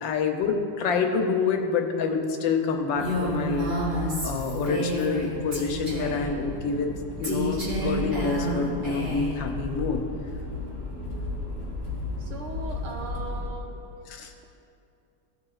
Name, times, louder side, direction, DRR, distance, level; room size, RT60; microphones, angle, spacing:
voice 1, 0.0-3.7 4.2-6.9 7.2-10.0 14.1-14.3, left 5 dB, 90° left, 4 dB, 1.5 m, -27 dB
Accelerating revving vroom, 3.0-13.5, left 2 dB, 35° right, 2.0 m, -35 dB
Female speech woman speaking, 3.0-5.3 5.5-6.3 7.2-9.4, right 1 dB, 50° right, 2.7 m, -30 dB
voice 2, 10.9-11.4 12.2-14.4, right 3 dB, 70° right, 1 dB, 1.5 m, -40 dB
17.0 x 5.9 x 2.4 m, 2.6 s
omnidirectional pair, 2.0 m